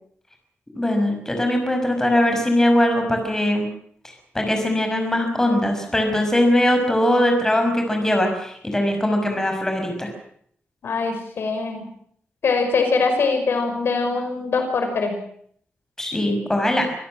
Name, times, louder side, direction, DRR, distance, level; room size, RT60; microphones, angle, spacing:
voice 1, 0.7-3.7 4.3-10.1 16.0-16.9, left 1 dB, 10° left, 4 dB, 6.0 m, -20 dB
voice 2, 10.8-11.9 12.4-15.2, left 4 dB, 70° left, 5 dB, 5.6 m, -22 dB
26.0 x 16.5 x 7.6 m, 0.65 s
wide cardioid pair, 145°, 4 cm